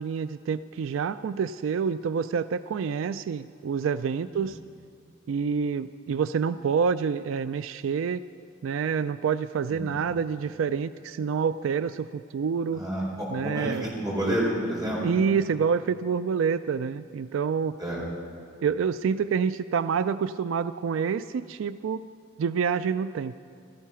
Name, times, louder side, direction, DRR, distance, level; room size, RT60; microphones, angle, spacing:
voice 1, 0.0-4.6 5.3-8.2 8.6-12.8 13.3-13.9 15.0-17.8 18.6-22.0 22.4-23.3, right 6 dB, 85° right, 14 dB, 0.3 m, -27 dB
voice 2, 9.7-10.0 12.7-15.0 17.8-18.0, right 1 dB, 20° right, -5 dB, 4.6 m, -29 dB
16.5 x 13.5 x 5.7 m, 2.3 s
head